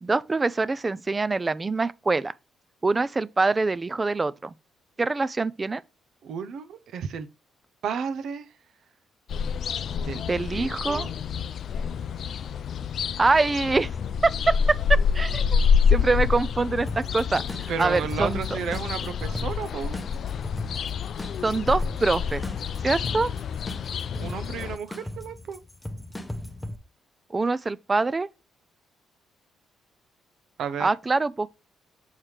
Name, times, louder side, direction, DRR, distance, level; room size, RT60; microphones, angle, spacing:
voice 1, 0.0-2.3 2.8-4.5 5.0-5.8 10.3-11.1 13.2-13.9 14.2-15.6 15.9-18.6 21.4-22.4 22.8-23.3 27.3-28.3 30.8-31.5, right 3 dB, 25° right, 0.4 m, -24 dB
voice 2, 6.2-7.3 7.8-8.5 10.1-10.2 10.5-11.1 17.7-20.0 24.2-25.6 30.6-30.9, right 7 dB, 70° right, 0.7 m, -32 dB
sound 1, 9.3-24.8, left 6 dB, 60° left, 0.4 m, -27 dB
sound 2, 16.9-26.7, left 1 dB, 10° left, 0.9 m, -38 dB
7.3 x 4.6 x 3.3 m
cardioid pair, 90°, 0 cm